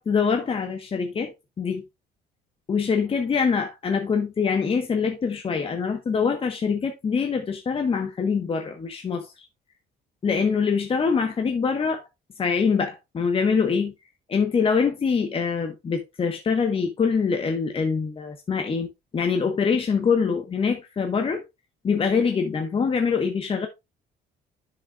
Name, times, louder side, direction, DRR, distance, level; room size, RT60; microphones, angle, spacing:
voice 1, 0.0-1.8 2.7-9.5 10.2-12.0 12.4-13.9 14.3-21.4 21.8-23.7, left 5 dB, 35° left, 1.4 m, -24 dB
9.9 x 6.6 x 2.5 m
cardioid pair, 110°, 17 cm